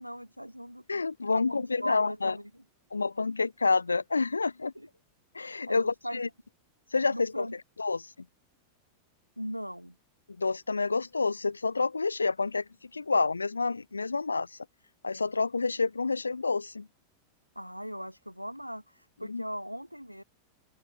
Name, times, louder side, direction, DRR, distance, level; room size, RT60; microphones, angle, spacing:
voice 1, 0.0-0.8 1.3-2.5 4.8-4.9 5.7-6.2 7.1-7.5 9.4-10.0 17.6-20.2, equal, 90° right, 5.6 m, -39 dB
voice 2, 0.9-2.4 2.9-4.7 5.3-6.3 6.9-7.5 7.8-8.1 10.4-14.6 15.0-16.9 19.2-19.4, left 4 dB, 80° left, 2.8 m, -28 dB
open air
figure-of-eight pair, 90°, 0 cm